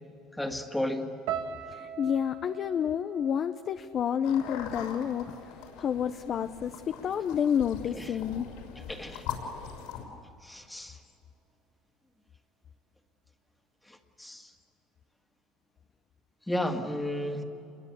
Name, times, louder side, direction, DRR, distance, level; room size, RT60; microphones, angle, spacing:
voice 1, 0.3-1.1 7.9-8.1 8.8-9.3 10.4-11.0 13.9-14.5 16.5-17.4, left 1 dB, 5° left, 4 dB, 2.0 m, -33 dB
sound 1, 1.3-5.5 5.7-6.5 7.1-7.3, right 8 dB, 80° right, 1.9 m, -42 dB
voice 2, 1.7-8.5, left 8 dB, 40° left, 9 dB, 0.7 m, -30 dB
sound 2, 4.2-10.0, left 8 dB, 80° left, 6.0 m, -41 dB
28.5 x 22.5 x 8.4 m, 2.8 s
cardioid pair, 140°, 0 cm